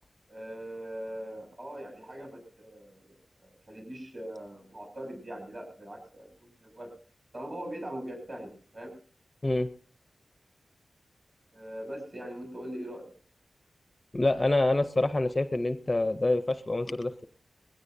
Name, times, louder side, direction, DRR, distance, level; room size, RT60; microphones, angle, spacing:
voice 1, 0.3-3.1 3.4-6.3 6.6-6.9 7.3-8.9 11.5-13.0, right 1 dB, 35° right, 2 dB, 6.5 m, -41 dB
voice 2, 14.1-17.2, left 2 dB, 20° left, 10 dB, 0.6 m, -26 dB
20.5 x 16.5 x 2.6 m, 0.43 s
wide cardioid pair, 140°, 0 cm